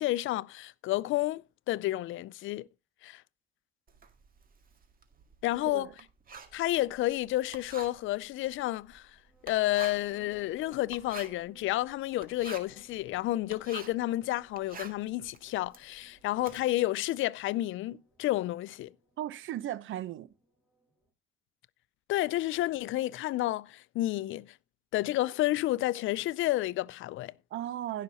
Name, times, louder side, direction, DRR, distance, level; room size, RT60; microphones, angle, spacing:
voice 1, 0.0-1.4 1.7-2.7 3.0-3.2 5.4-5.9 6.5-9.1 9.4-18.9 22.1-24.5 24.9-27.3, left 16 dB, 80° left, 0.5 m, -30 dB
Writing, 3.9-14.1 14.4-16.6, right 5 dB, 45° right, 1.9 m, -48 dB
sound 1, 9.2-21.1, right 3 dB, ahead, 5.2 m, -63 dB
voice 2, 19.2-20.3 27.5-28.0, right 12 dB, 80° right, 0.8 m, -36 dB
16.5 x 5.9 x 4.1 m
cardioid pair, 90°, 20 cm